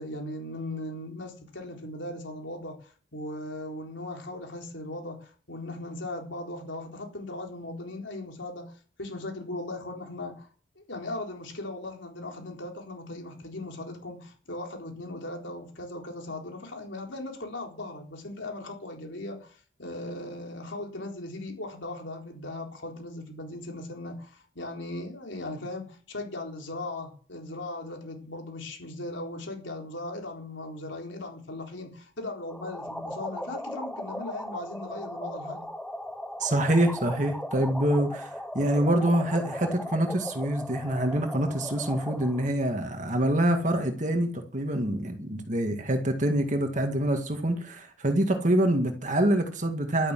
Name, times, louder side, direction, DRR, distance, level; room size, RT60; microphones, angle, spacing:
voice 1, 0.0-8.7 9.0-10.5 10.8-35.7, left 2 dB, 80° left, 4.1 m, -38 dB
sound 1, 32.5-42.5, equal, 5° left, 0.8 m, -37 dB
voice 2, 36.4-50.1, right 1 dB, 40° right, 2.1 m, -26 dB
12.5 x 10.5 x 7.6 m
head